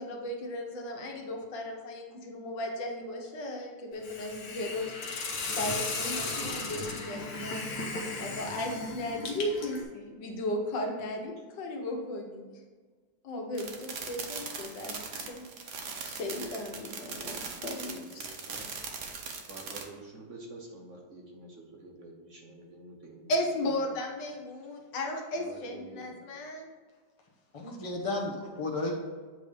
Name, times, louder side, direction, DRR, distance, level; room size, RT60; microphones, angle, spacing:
voice 1, 0.0-12.6 13.2-18.3 23.3-26.7, left 1 dB, 75° left, 1 dB, 1.7 m, -36 dB
Hiss, 4.0-9.8, left 3 dB, 60° left, 1.5 m, -36 dB
sound 1, 13.5-19.8, right 5 dB, 65° right, 1.4 m, -40 dB
voice 2, 18.2-18.7 19.5-23.3 25.4-26.2, right 2 dB, 50° right, 0 dB, 1.1 m, -48 dB
voice 3, 27.5-28.9, left 2 dB, 35° left, -1 dB, 0.5 m, -33 dB
8.1 x 3.5 x 5.1 m, 1.5 s
omnidirectional pair, 2.0 m